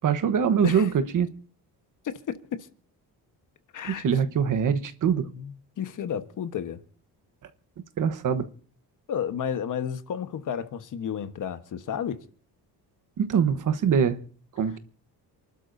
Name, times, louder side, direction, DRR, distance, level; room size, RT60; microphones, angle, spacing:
voice 1, 0.0-1.3 3.8-5.3 8.0-8.5 13.2-14.2 14.6-14.8, right 7 dB, 50° right, 1.2 m, -23 dB
voice 2, 2.0-2.4 3.7-4.1 5.4-6.8 9.1-12.2, left 8 dB, 50° left, 1.3 m, -32 dB
28.5 x 12.0 x 2.7 m
cardioid pair, 145°, 39 cm